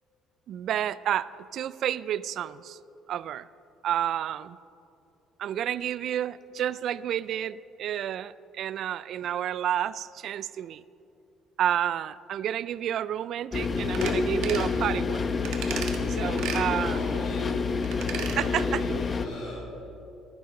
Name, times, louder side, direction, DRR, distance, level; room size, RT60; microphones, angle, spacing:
voice 1, 0.5-2.8 3.1-3.5 3.8-4.6 5.4-10.8 11.6-15.2 16.1-17.1 18.4-18.8, right 10 dB, 65° right, 18 dB, 0.3 m, -30 dB
sound 1, 13.5-19.3, left 4 dB, 35° left, 0.8 m, -28 dB
sound 2, 13.9-14.2 14.4-14.7 15.5-16.0 16.4-16.6 17.8-18.4 18.7-18.8, right 7 dB, 80° right, 1.3 m, -35 dB
voice 2, 16.0-17.7 18.2-19.8, left 2 dB, 60° left, -6 dB, 2.7 m, -40 dB
15.0 x 11.5 x 3.9 m, 2.8 s
cardioid pair, 95°, 0 cm